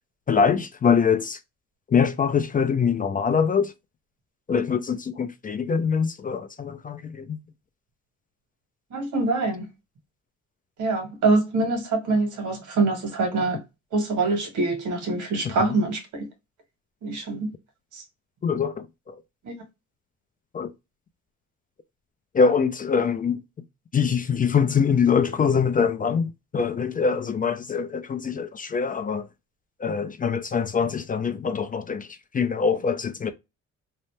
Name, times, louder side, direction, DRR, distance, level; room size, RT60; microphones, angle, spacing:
voice 1, 0.3-1.4 1.9-3.7 4.5-7.4 15.6-15.8 18.4-19.2 20.5-20.7 22.3-23.4 23.9-29.3 29.8-32.1 32.3-33.3, left 6 dB, 30° left, 0.4 m, -23 dB
voice 2, 8.9-9.6 10.8-13.6 13.9-16.3 17.0-17.5 17.9-18.0 19.4-19.6, right 3 dB, 75° right, 1.4 m, -24 dB
2.8 x 2.0 x 3.1 m
cardioid pair, 90°, 30 cm